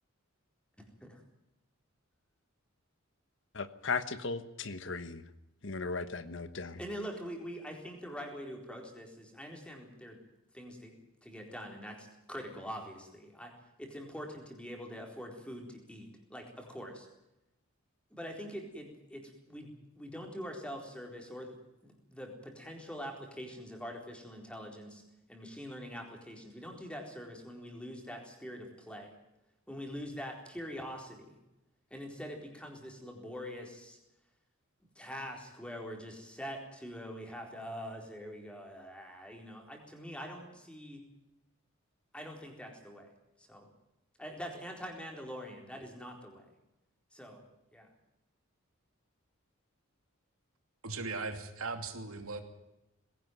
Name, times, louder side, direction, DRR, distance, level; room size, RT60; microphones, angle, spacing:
voice 1, 3.5-5.2 5.6-6.8, left 4 dB, 60° left, 12 dB, 1.2 m, -36 dB
voice 2, 6.8-10.2 10.5-10.9 11.2-13.5 13.8-17.1 18.1-21.6 21.8-25.0 25.3-29.1 29.7-31.4 31.9-34.0 35.0-41.0 42.1-43.1 43.4-43.7 44.2-46.5 47.1-47.5 47.7-47.9, equal, 5° left, 2 dB, 4.2 m, -44 dB
voice 3, 50.8-52.4, right 3 dB, 85° right, 6 dB, 2.8 m, -38 dB
20.5 x 17.0 x 9.3 m, 0.91 s
head